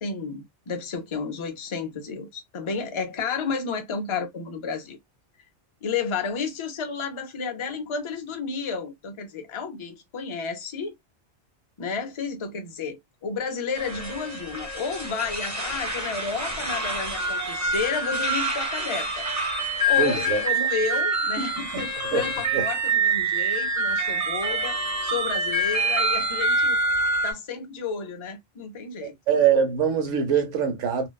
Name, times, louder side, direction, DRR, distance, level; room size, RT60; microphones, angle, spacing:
voice 1, 0.0-5.0 5.8-11.0 11.8-19.3 19.8-26.8 27.2-29.1, left 5 dB, 40° left, 0.4 m, -31 dB
sound 1, 13.7-27.3, right 2 dB, 15° right, 0.9 m, -26 dB
voice 2, 20.0-20.4 21.7-21.9 22.1-22.2 22.5-22.6 29.0-31.1, right 7 dB, 90° right, 1.1 m, -23 dB
2.6 x 2.2 x 2.2 m
omnidirectional pair, 1.2 m